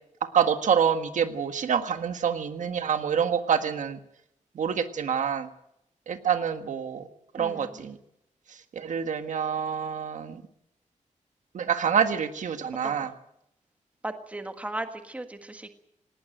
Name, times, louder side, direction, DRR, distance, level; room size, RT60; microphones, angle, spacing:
voice 1, 0.3-4.0 4.5-5.5 6.1-7.1 7.3-8.0 8.7-10.4 11.5-13.1, right 7 dB, 75° right, 8 dB, 1.6 m, -26 dB
voice 2, 7.4-7.7 12.8-13.1 14.0-15.7, right 2 dB, 10° right, 7 dB, 1.6 m, -36 dB
19.0 x 19.0 x 9.0 m, 0.79 s
wide cardioid pair, 150°, 13 cm